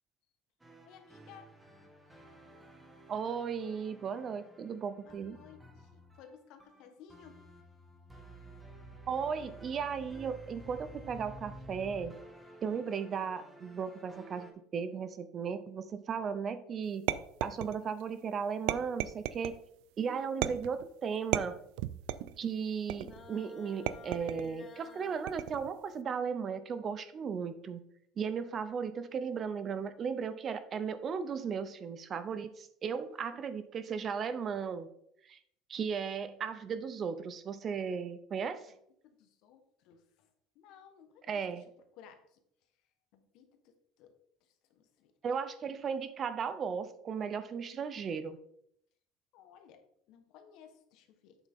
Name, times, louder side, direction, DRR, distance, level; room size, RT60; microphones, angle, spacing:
sound 1, 0.6-14.5, right 1 dB, 10° right, 1.5 m, -52 dB
voice 1, 0.8-1.5 5.0-7.4 20.0-20.3 33.1-33.4 39.0-40.3 40.5-41.6 42.0-42.4 43.1-44.1 44.4-45.1 49.3-51.4, left 8 dB, 65° left, 7 dB, 1.3 m, -57 dB
voice 2, 3.1-5.4 9.1-12.1 12.6-17.1 17.4-19.5 20.0-21.6 22.4-27.8 28.2-34.9 35.2-35.4 35.7-38.7 41.3-41.6 45.2-48.4, right 6 dB, 35° right, 12 dB, 0.7 m, -36 dB
sound 2, 17.1-18.0 18.7-19.6 20.4-20.9 21.3-22.4 22.9-23.3 23.9-24.5 25.3-25.7, right 14 dB, 80° right, 0.4 m, -35 dB
sound 3, 23.0-25.3, left 4 dB, 30° left, 0.8 m, -51 dB
8.3 x 6.4 x 3.7 m, 0.71 s
cardioid pair, 130°, 0 cm